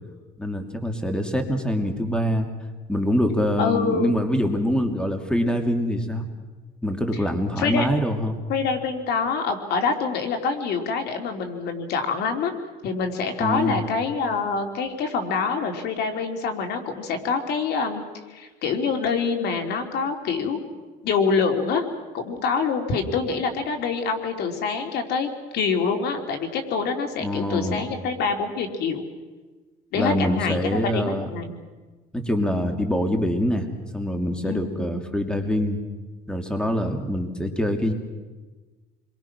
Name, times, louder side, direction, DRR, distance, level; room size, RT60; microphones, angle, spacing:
voice 1, 0.4-2.5 2.9-6.2 6.8-8.4 13.4-13.8 27.2-27.8 29.9-31.3 32.1-33.7 33.9-35.8 36.3-37.9, equal, 5° left, 5 dB, 2.7 m, -24 dB
voice 2, 3.6-4.1 7.6-7.9 8.5-12.5 12.8-18.0 18.3-20.6 21.0-21.8 22.1-25.3 25.5-29.0 29.9-31.6 34.4-35.0, left 5 dB, 75° left, 5 dB, 3.1 m, -25 dB
28.5 x 23.0 x 6.1 m, 1.3 s
cardioid pair, 110°, 17 cm